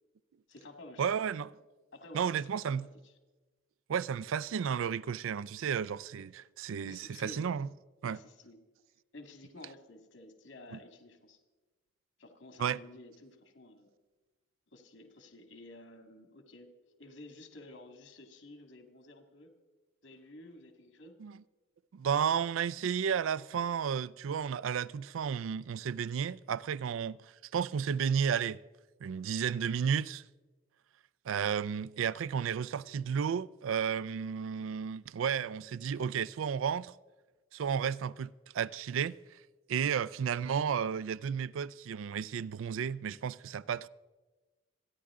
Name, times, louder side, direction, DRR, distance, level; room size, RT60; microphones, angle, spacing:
voice 1, 0.5-1.2 1.9-2.7 3.0-3.1 6.8-7.5 8.0-8.6 9.1-11.4 12.2-13.9 14.7-16.7 17.0-19.5 20.0-21.2, left 2 dB, 75° left, 2.0 m, -52 dB
voice 2, 1.0-1.6 2.1-2.9 3.9-7.7 8.0-8.2 12.6-12.8 21.2-21.4 21.9-27.2 27.5-28.6 29.0-30.2 31.3-36.9 37.5-39.2 39.7-43.9, right 7 dB, 85° right, 0.4 m, -32 dB
27.0 x 10.5 x 3.7 m
head